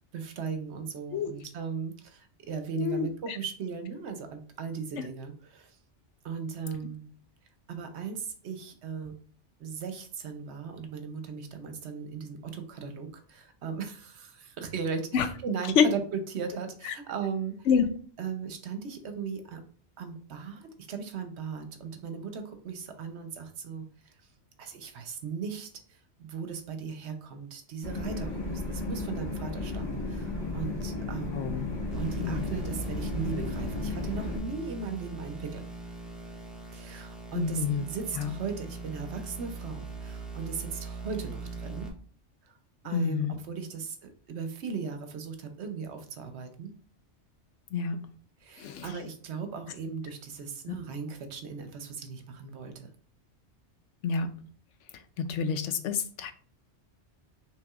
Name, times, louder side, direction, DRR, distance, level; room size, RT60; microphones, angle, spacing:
voice 1, 0.0-5.7 6.2-7.0 7.7-9.1 9.6-17.7 18.2-19.6 20.0-23.8 24.6-25.7 26.2-31.5 32.0-35.6 36.7-41.9 42.8-46.7 48.4-52.9, right 6 dB, 70° right, 7 dB, 1.0 m, -37 dB
voice 2, 2.8-3.4 15.1-15.3 15.8-15.9 16.9-17.0 17.7-17.9 31.3-31.6 32.2-32.5 37.3-37.8 38.2-38.3 42.9-43.3 47.7-48.0 48.6-48.9 50.7-50.8 54.0-54.3 55.2-56.3, left 6 dB, 90° left, 10 dB, 0.9 m, -27 dB
sound 1, 27.8-34.4, left 2 dB, 40° left, 1.4 m, -34 dB
sound 2, 31.9-41.9, right 3 dB, ahead, 0.7 m, -40 dB
5.7 x 3.2 x 2.4 m, 0.44 s
omnidirectional pair, 1.2 m